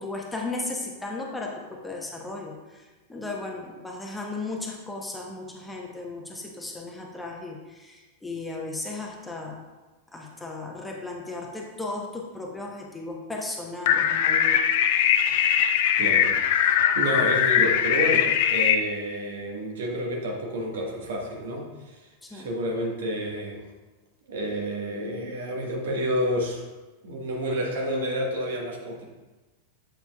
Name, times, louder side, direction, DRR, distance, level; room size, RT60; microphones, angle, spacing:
voice 1, 0.0-9.6 10.1-14.6 22.2-22.5, left 2 dB, 10° left, -1 dB, 1.0 m, -35 dB
sound 1, 13.9-18.7, left 9 dB, 50° left, 0.4 m, -21 dB
voice 2, 16.0-22.0 22.3-23.6 24.3-26.6 27.0-29.0, equal, 60° right, 0 dB, 1.3 m, -30 dB
7.8 x 7.0 x 2.3 m, 1.2 s
figure-of-eight pair, 90°, 0 cm